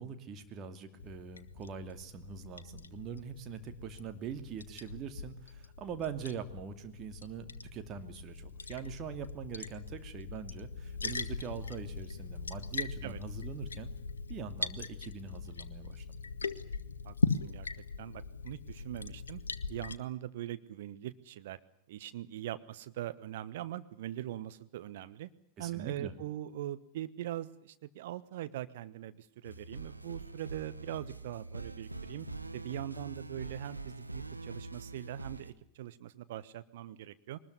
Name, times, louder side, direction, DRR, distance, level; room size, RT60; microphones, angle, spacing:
voice 1, 0.0-13.9 14.3-16.2 25.6-26.1, right 6 dB, 30° right, 7 dB, 2.7 m, -43 dB
Liquid, 1.0-19.9, left 4 dB, 75° left, 1.1 m, -40 dB
voice 2, 17.0-17.7 18.0-19.4 19.7-21.6 21.9-25.3 25.6-32.3 32.5-37.4, right 13 dB, 55° right, 13 dB, 1.2 m, -42 dB
sound 1, 29.4-35.5, right 2 dB, 85° right, 1.3 m, -44 dB
22.0 x 20.5 x 9.8 m, 0.69 s
figure-of-eight pair, 90°, 0 cm